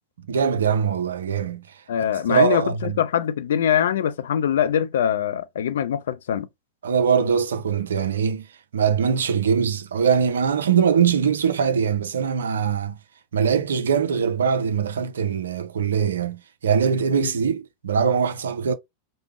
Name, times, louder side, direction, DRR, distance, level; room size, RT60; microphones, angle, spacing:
voice 1, 0.3-1.7 2.3-3.0 6.8-8.5 8.7-13.0 13.3-18.7, right 7 dB, 65° right, 0.5 m, -22 dB
voice 2, 1.9-6.5 17.2-17.3, left 9 dB, 60° left, 0.4 m, -23 dB
3.3 x 2.1 x 3.1 m
figure-of-eight pair, 90°, 0 cm